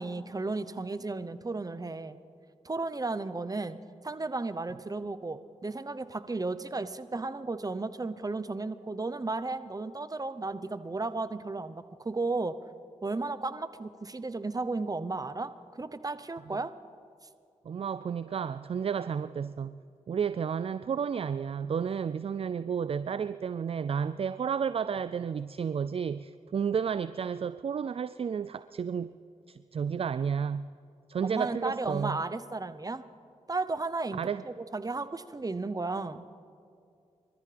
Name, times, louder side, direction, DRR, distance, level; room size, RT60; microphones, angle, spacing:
voice 1, 0.0-2.2 2.6-3.8 4.0-12.5 13.0-16.7 31.2-33.0 33.5-34.2 34.4-36.2, right 3 dB, 25° right, 12 dB, 0.8 m, -34 dB
voice 2, 17.7-19.8 20.1-29.1 29.5-30.7 31.1-32.2 34.2-34.4, right 7 dB, 45° right, 14 dB, 0.4 m, -32 dB
24.5 x 13.5 x 3.4 m, 2.5 s
supercardioid pair, 45°, 13 cm